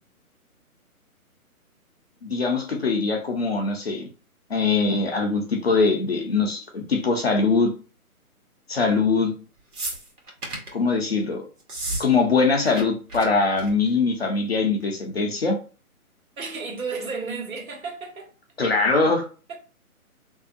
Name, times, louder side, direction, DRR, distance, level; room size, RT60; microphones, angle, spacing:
voice 1, 2.2-4.1 4.5-7.7 8.7-9.3 10.7-11.4 12.0-15.6 18.6-19.3, left 4 dB, 45° left, 0.5 m, -22 dB
sound 1, 9.7-10.7 11.6-12.1 12.3-12.8 13.1-13.3 13.6-13.9 14.8-14.9, right 2 dB, 90° right, 1.2 m, -32 dB
voice 2, 16.4-18.3 19.5-19.6, right 4 dB, 65° right, 1.3 m, -32 dB
2.6 x 2.1 x 2.5 m
hypercardioid pair, 160°, 44 cm